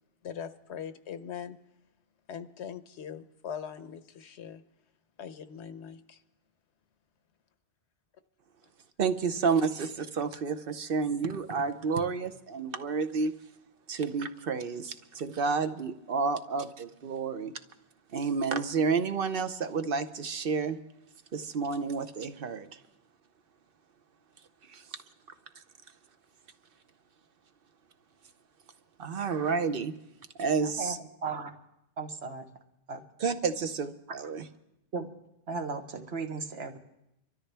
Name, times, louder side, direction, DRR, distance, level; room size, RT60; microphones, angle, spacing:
voice 1, 0.2-1.6 2.3-4.6 5.2-6.2, left 8 dB, 80° left, 11 dB, 1.1 m, -41 dB
voice 2, 9.0-13.3 13.9-17.5 18.1-20.8 21.3-22.8 24.7-24.8 29.0-29.9 30.4-31.0 33.2-34.4, right 5 dB, 60° right, 10 dB, 0.9 m, -30 dB
voice 3, 30.6-30.9 31.2-31.5 32.0-32.5 32.9-33.0 34.9-35.1 35.5-36.8, right 4 dB, 75° right, 4 dB, 1.5 m, -35 dB
25.5 x 13.0 x 3.4 m, 0.84 s
omnidirectional pair, 1.1 m